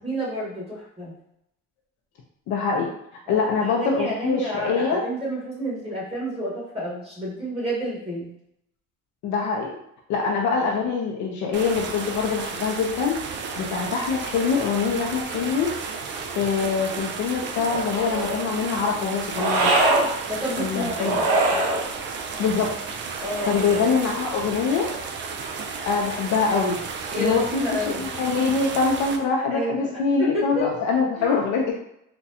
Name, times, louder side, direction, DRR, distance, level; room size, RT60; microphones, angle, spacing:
voice 1, 0.0-1.1 3.3-8.3 20.3-21.2 23.2-23.6 27.1-28.0 29.5-30.7 31.2-31.4, right 1 dB, 20° right, -6 dB, 1.2 m, -30 dB
voice 2, 2.5-2.9 3.3-5.0 9.2-9.7 10.1-13.1 13.6-15.7 16.4-19.7 20.6-21.6 22.4-22.7 23.5-24.9 25.9-26.8 27.2-31.6, left 5 dB, 60° left, -1 dB, 0.6 m, -24 dB
sound 1, 11.5-29.2, right 5 dB, 35° right, 0.4 m, -33 dB
sound 2, 17.6-18.4 19.3-20.1 21.0-21.8 23.2-24.0, right 2 dB, 80° right, 1.0 m, -23 dB
4.1 x 2.2 x 2.7 m, 0.77 s
cardioid pair, 130°, 32 cm